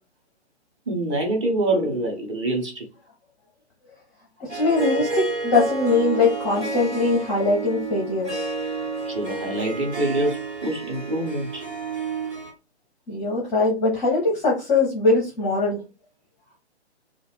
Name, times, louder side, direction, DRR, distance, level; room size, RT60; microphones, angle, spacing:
voice 1, 0.9-2.9 9.0-11.6, right 1 dB, 30° right, 0 dB, 0.9 m, -25 dB
voice 2, 4.4-8.5 13.1-15.8, left 3 dB, 10° left, -3 dB, 0.6 m, -21 dB
Harp, 4.5-12.5, right 3 dB, 80° right, 1.6 m, -30 dB
2.5 x 2.4 x 3.3 m, 0.30 s
figure-of-eight pair, 130°, 34 cm